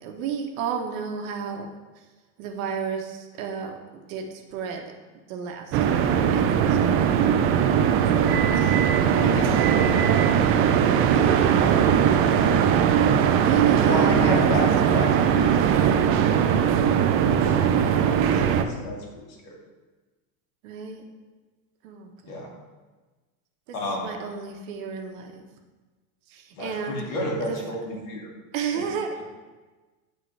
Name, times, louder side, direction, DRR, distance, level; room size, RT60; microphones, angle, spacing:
voice 1, 0.0-1.7 2.4-3.8 4.1-4.3 4.5-4.8 5.3-7.2 8.1-8.8 11.1-11.8 13.4-15.0 20.6-21.0 21.8-22.5 24.0-25.4 26.3-27.0 27.4-27.6 28.5-29.2, right 6 dB, 70° right, 3 dB, 1.1 m, -32 dB
sound 1, 5.7-18.6, right 8 dB, 35° right, 0.4 m, -20 dB
voice 2, 9.2-10.2 12.2-12.7 13.8-15.9 16.3-19.6 22.3-22.5 23.7-24.1 26.5-28.3 28.7-28.8 29.2-29.3, left 1 dB, 65° left, -1 dB, 2.0 m, -32 dB
10.5 x 3.7 x 3.2 m, 1.3 s
supercardioid pair, 120°, 42 cm